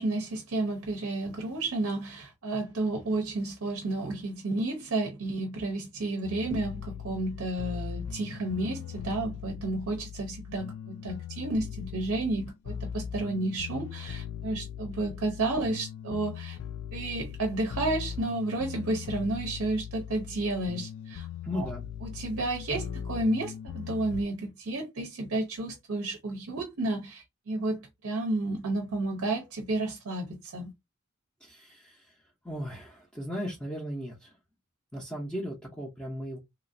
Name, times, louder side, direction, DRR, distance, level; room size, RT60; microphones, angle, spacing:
voice 1, 0.0-16.6 16.9-21.3 21.5-21.7 22.0-30.7, right 2 dB, 60° right, 0.6 m, -31 dB
sound 1, 6.2-24.2, left 8 dB, 65° left, 0.3 m, -39 dB
voice 2, 21.4-21.8 31.4-32.2 32.4-34.3 34.9-36.4, equal, 5° left, 0.6 m, -36 dB
2.9 x 2.5 x 2.5 m
head